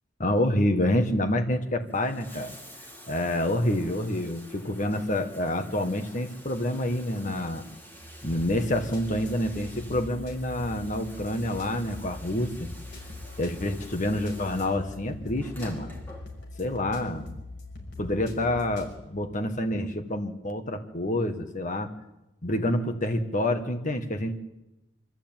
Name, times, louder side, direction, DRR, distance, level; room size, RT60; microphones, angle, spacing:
voice 1, 0.2-2.5 3.1-7.6 8.2-12.7 13.4-15.9 16.6-17.3 18.0-21.9 22.4-24.3, left 1 dB, 40° left, 6 dB, 1.6 m, -27 dB
Bathtub (filling or washing), 1.9-16.7 17.8-17.9, equal, 10° left, 4.6 m, -49 dB
sound 1, 8.3-18.9, left 2 dB, 65° left, 6.0 m, -42 dB
25.0 x 14.5 x 9.0 m, 0.96 s
head